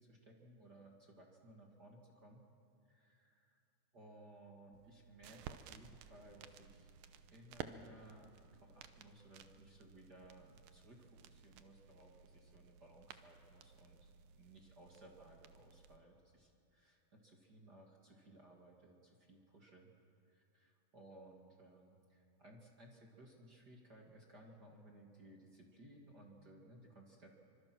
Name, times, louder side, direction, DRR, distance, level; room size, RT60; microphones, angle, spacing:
voice 1, 0.0-2.4 2.8-3.6 3.9-6.9 7.3-19.9 20.3-27.3, right 1 dB, 35° right, 0 dB, 1.7 m, -60 dB
sound 1, 4.7-16.0, right 8 dB, 80° right, 2.1 m, -56 dB
27.5 x 25.0 x 6.2 m, 2.7 s
omnidirectional pair, 5.1 m